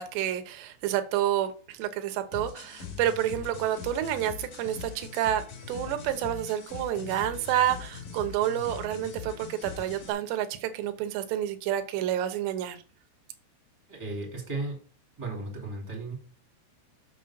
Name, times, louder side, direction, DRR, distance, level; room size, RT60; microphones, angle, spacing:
voice 1, 0.0-5.4 5.7-12.8, right 11 dB, 75° right, 2.9 m, -29 dB
sound 1, 2.3-10.1, left 6 dB, 50° left, 3.3 m, -42 dB
voice 2, 13.9-14.8 15.2-16.1, right 2 dB, 10° right, 1.5 m, -35 dB
7.5 x 6.5 x 4.3 m
omnidirectional pair, 5.5 m